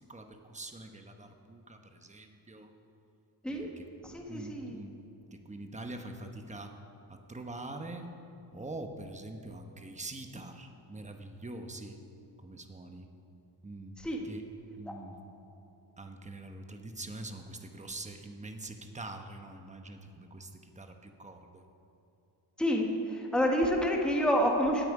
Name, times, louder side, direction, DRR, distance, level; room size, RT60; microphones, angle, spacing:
voice 1, 0.1-2.7 3.5-3.9 4.3-4.9 5.3-6.7 7.1-8.2 8.5-12.0 12.4-13.1 13.6-14.0 14.2-14.5 14.8-15.2 16.0-21.6, right 2 dB, 15° right, 5 dB, 1.0 m, -44 dB
voice 2, 4.0-4.8 14.0-14.2 22.6-24.9, equal, ahead, 0 dB, 1.3 m, -28 dB
17.5 x 9.1 x 4.9 m, 2.8 s
wide cardioid pair, 135°, 42 cm